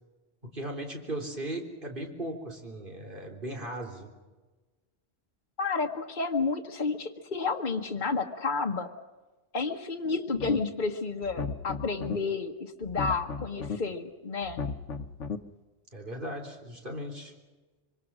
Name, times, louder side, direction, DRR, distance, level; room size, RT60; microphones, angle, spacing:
voice 1, 0.4-4.1 15.9-17.3, right 1 dB, 45° right, 2 dB, 3.9 m, -37 dB
voice 2, 5.6-8.9 9.5-14.6, left 4 dB, 45° left, 1 dB, 1.4 m, -31 dB
sound 1, 10.3-10.8 11.2-12.2 12.8-13.8 14.4-15.4, left 5 dB, 85° left, 1.4 m, -35 dB
25.5 x 25.0 x 6.1 m, 1.2 s
omnidirectional pair, 1.2 m